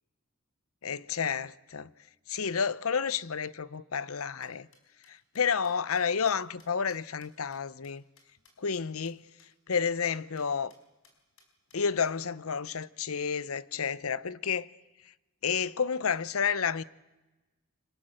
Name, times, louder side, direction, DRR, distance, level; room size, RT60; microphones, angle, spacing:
voice 1, 0.8-1.9 2.3-4.7 5.1-8.0 8.6-9.2 9.7-10.7 11.7-14.7 15.4-16.8, left 6 dB, 80° left, 0.8 m, -30 dB
sound 1, 4.1-8.8 9.1-9.2 9.4-9.5 9.7-9.8 10.0-10.4 10.7-10.8 11.0-12.1, left 4 dB, 65° left, 4.8 m, -62 dB
25.0 x 21.0 x 7.8 m
head